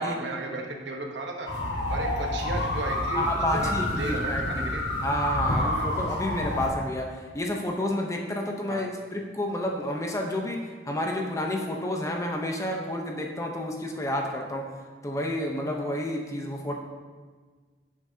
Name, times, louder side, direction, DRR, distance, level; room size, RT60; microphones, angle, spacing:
voice 1, 0.0-1.5 1.9-3.3 3.5-4.8 5.5-6.0 8.7-8.8, right 2 dB, 85° right, 2 dB, 1.1 m, -35 dB
sound 1, 1.4-6.7, left 1 dB, 80° left, 1.9 m, -28 dB
voice 2, 3.1-4.7 5.0-10.6 10.8-14.7 15.0-16.8, left 1 dB, 20° left, 1 dB, 0.9 m, -30 dB
11.0 x 7.2 x 2.8 m, 1.5 s
head